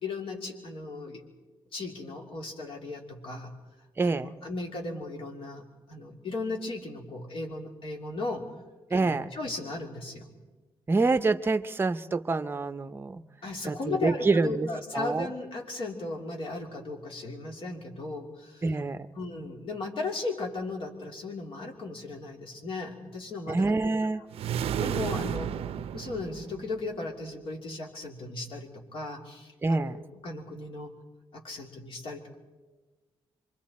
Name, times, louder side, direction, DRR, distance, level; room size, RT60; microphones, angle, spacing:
voice 1, 0.0-1.2 1.7-3.5 4.0-8.5 8.9-10.3 13.4-18.6 19.1-23.9 24.5-25.5 25.9-30.9 31.3-32.3, left 3 dB, 65° left, 1 dB, 3.0 m, -36 dB
voice 2, 4.0-4.3 8.9-9.3 10.9-13.2 13.6-14.7 14.9-15.3 18.6-19.1 23.5-24.2 29.6-30.0, right 3 dB, 20° right, 11 dB, 0.7 m, -26 dB
sound 1, 24.3-26.9, right 9 dB, 80° right, 0.6 m, -32 dB
26.5 x 24.0 x 4.3 m, 1.3 s
cardioid pair, 125°, 10 cm